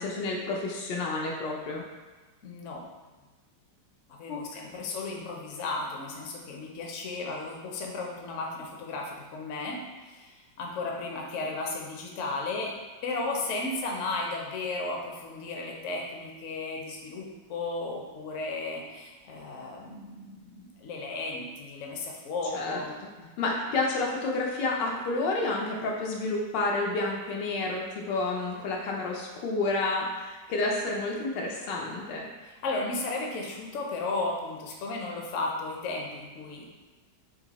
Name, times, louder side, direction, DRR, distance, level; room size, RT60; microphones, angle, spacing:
voice 1, 0.0-1.8 4.3-4.7 22.5-22.8 23.4-32.2, left 3 dB, 85° left, -1 dB, 1.3 m, -30 dB
voice 2, 2.4-2.8 4.1-12.7 13.0-23.3 32.4-36.7, left 3 dB, 60° left, 0 dB, 0.8 m, -34 dB
4.1 x 2.6 x 4.0 m, 1.3 s
omnidirectional pair, 1.9 m